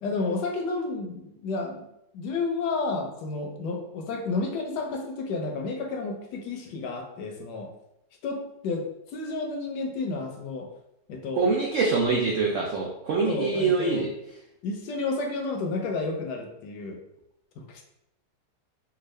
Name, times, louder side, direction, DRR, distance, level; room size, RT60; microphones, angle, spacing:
voice 1, 0.0-1.9 2.1-7.7 8.2-8.9 9.1-10.7 11.1-11.5 13.2-14.1 14.6-17.0 17.6-17.8, left 3 dB, 75° left, 3 dB, 1.2 m, -31 dB
voice 2, 11.3-14.1, right 4 dB, 90° right, -1 dB, 0.6 m, -24 dB
3.6 x 2.3 x 3.1 m, 0.82 s
omnidirectional pair, 1.9 m